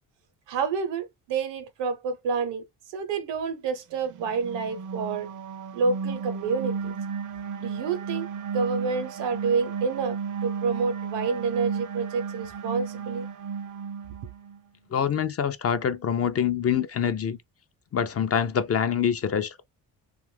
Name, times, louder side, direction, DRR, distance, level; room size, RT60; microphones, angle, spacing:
voice 1, 0.5-5.3 5.7-6.9 7.6-13.3, right 5 dB, 75° right, 0.8 m, -29 dB
sound 1, 4.1-14.6, right 6 dB, 45° right, 0.5 m, -34 dB
voice 2, 14.9-17.4 17.9-19.6, left 8 dB, 35° left, 0.4 m, -25 dB
2.7 x 2.4 x 3.2 m
supercardioid pair, 70°, 43 cm